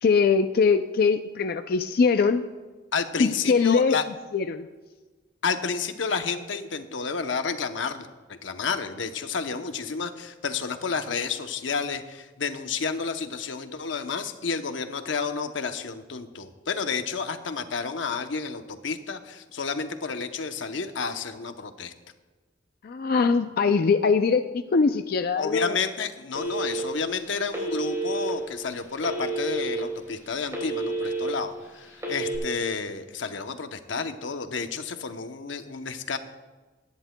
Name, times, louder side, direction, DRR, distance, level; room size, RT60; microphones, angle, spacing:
voice 1, 0.0-2.4 3.2-4.0 4.3-4.7 22.8-25.8, left 5 dB, 55° left, 8 dB, 0.4 m, -22 dB
voice 2, 2.9-4.0 5.4-21.9 25.4-36.2, left 5 dB, 85° left, 7 dB, 0.8 m, -31 dB
Telephone, 26.4-27.1 27.5-28.3 29.0-29.8 30.2-31.3 31.9-32.4, right 2 dB, 15° right, 3.4 m, -29 dB
21.0 x 10.5 x 2.2 m, 1.3 s
head